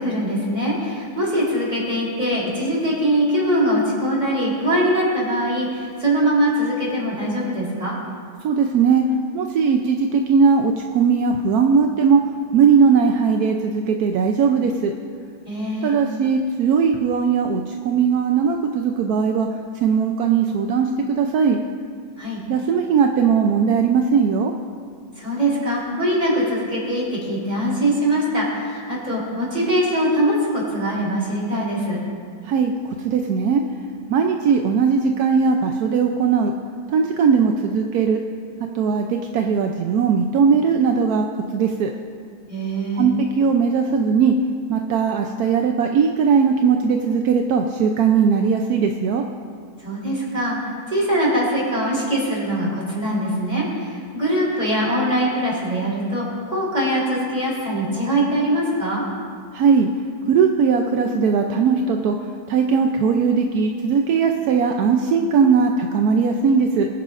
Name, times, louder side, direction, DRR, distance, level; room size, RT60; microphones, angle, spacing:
voice 1, 0.0-8.0 15.5-16.0 22.2-22.4 25.2-32.0 42.5-43.1 49.8-59.0, equal, 25° right, -5 dB, 3.7 m, -22 dB
voice 2, 8.4-9.0 9.3-12.2 12.5-14.9 15.8-19.5 19.8-21.6 22.5-24.5 32.5-32.7 33.0-33.6 34.1-36.5 36.9-38.2 38.7-41.3 41.5-41.9 43.0-44.3 44.7-49.2 59.5-59.9 60.3-62.2 62.5-66.9, right 6 dB, 75° right, 4 dB, 1.1 m, -19 dB
22.5 x 10.5 x 2.5 m, 2.2 s
omnidirectional pair, 1.7 m